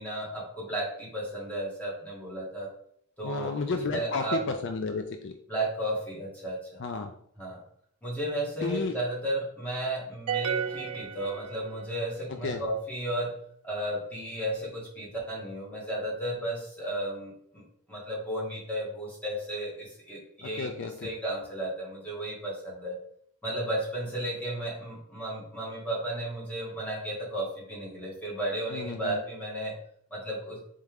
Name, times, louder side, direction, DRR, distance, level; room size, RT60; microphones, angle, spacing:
voice 1, 0.0-2.7 3.2-4.4 5.5-6.6 7.4-7.6 8.0-13.3 13.6-17.6 17.9-22.9 23.4-29.7 30.1-30.6, right 1 dB, 5° left, -5 dB, 1.4 m, -34 dB
voice 2, 3.2-5.3 6.8-7.1 8.6-8.9 12.4-12.6 20.6-21.1 28.7-29.2, left 4 dB, 55° left, 6 dB, 0.4 m, -32 dB
sound 1, 10.3-12.0, right 7 dB, 85° right, 0.5 m, -32 dB
4.2 x 3.6 x 3.4 m, 0.67 s
head